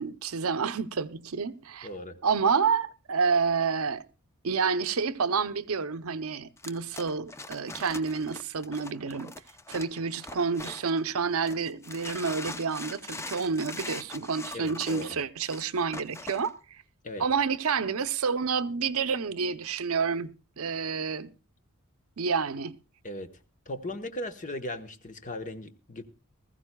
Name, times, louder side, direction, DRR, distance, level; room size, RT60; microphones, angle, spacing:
voice 1, 0.0-1.9 2.2-4.0 4.4-9.3 9.7-16.8 17.2-21.3 22.2-22.7, right 5 dB, 70° right, 0.7 m, -29 dB
voice 2, 1.8-2.2 14.5-15.2 17.0-17.3 23.0-23.3 23.7-26.1, left 1 dB, 35° left, 1.1 m, -37 dB
sound 1, 6.6-11.1 11.5-16.5, left 2 dB, 15° left, 0.6 m, -42 dB
20.0 x 15.0 x 2.3 m
head